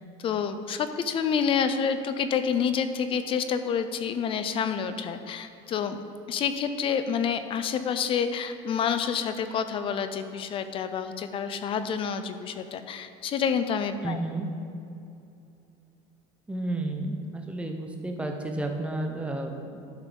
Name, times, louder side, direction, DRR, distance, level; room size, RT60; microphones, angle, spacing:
voice 1, 0.2-6.0 6.3-14.2, left 7 dB, 40° left, 10 dB, 0.5 m, -28 dB
voice 2, 14.0-14.5 16.5-19.8, right 2 dB, 10° right, 3 dB, 0.8 m, -32 dB
12.0 x 5.5 x 3.9 m, 2.7 s
cardioid pair, 130°, 14 cm